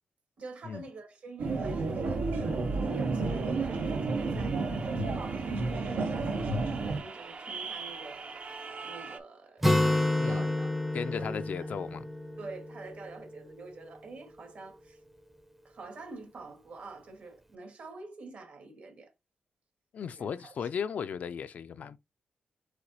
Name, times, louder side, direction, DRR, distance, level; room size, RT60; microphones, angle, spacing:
voice 1, 0.4-2.6 2.8-8.3 8.8-10.8 11.1-11.7 12.4-15.0 15.6-19.1 20.1-20.7, right 3 dB, 60° right, 1.9 m, -47 dB
sound 1, 1.4-7.0, right 3 dB, 85° right, 1.0 m, -31 dB
sound 2, 1.5-9.2, right 4 dB, 45° right, 0.6 m, -44 dB
Acoustic guitar, 9.6-13.3, left 1 dB, 5° right, 0.6 m, -29 dB
voice 2, 10.9-12.1 19.9-22.0, left 7 dB, 60° left, 0.4 m, -36 dB
4.9 x 3.9 x 2.7 m
cardioid pair, 110°, 3 cm